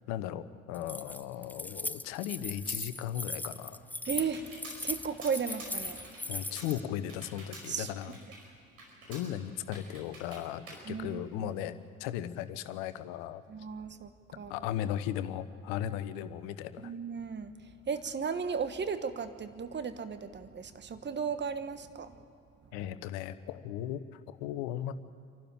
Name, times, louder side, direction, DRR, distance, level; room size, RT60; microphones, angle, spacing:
voice 1, 0.1-3.9 6.3-8.2 9.1-13.4 14.5-16.9 22.7-24.9, left 11 dB, 65° left, 13 dB, 1.1 m, -37 dB
Keys jangling, 0.7-6.8, left 2 dB, 5° left, 0.5 m, -38 dB
Computer keyboard, 3.4-11.8, right 2 dB, 80° right, 5.2 m, -50 dB
voice 2, 4.1-4.4 4.8-6.0 7.7-7.9 10.8-11.5 13.5-14.1 14.3-14.7 16.8-17.5 17.9-22.2, right 6 dB, 25° right, 10 dB, 1.3 m, -35 dB
27.5 x 12.0 x 8.9 m, 2.5 s
hypercardioid pair, 60°, 41 cm